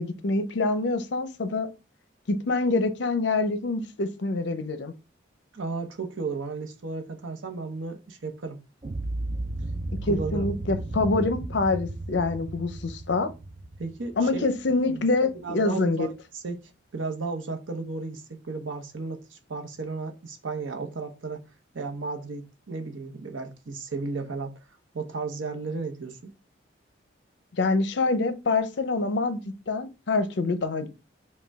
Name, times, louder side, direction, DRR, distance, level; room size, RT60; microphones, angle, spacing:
voice 1, 0.0-1.7 2.3-4.9 10.1-13.3 14.2-16.1 27.6-30.9, left 3 dB, 65° left, 0.5 m, -26 dB
voice 2, 5.5-8.6 10.0-10.5 13.8-14.5 14.9-16.6 16.9-21.4 21.7-24.5 24.9-26.3, right 4 dB, 80° right, 0.8 m, -34 dB
sound 1, 8.8-14.9, right 2 dB, 30° right, 0.3 m, -34 dB
5.2 x 2.3 x 3.4 m
head